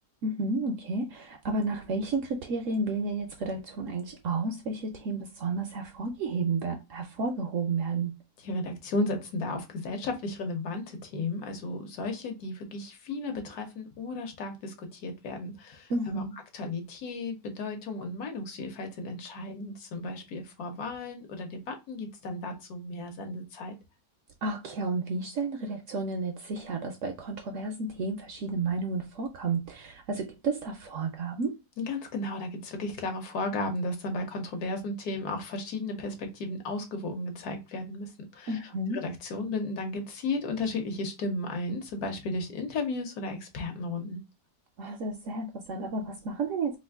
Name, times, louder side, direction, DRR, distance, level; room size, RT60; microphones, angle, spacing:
voice 1, 0.2-8.1 15.9-16.3 24.4-31.5 38.5-39.0 44.8-46.8, right 3 dB, 70° right, 0.8 m, -31 dB
voice 2, 8.4-16.2 16.5-23.7 31.8-44.2, left 2 dB, 70° left, 1.3 m, -34 dB
3.0 x 2.4 x 3.4 m
omnidirectional pair, 1.7 m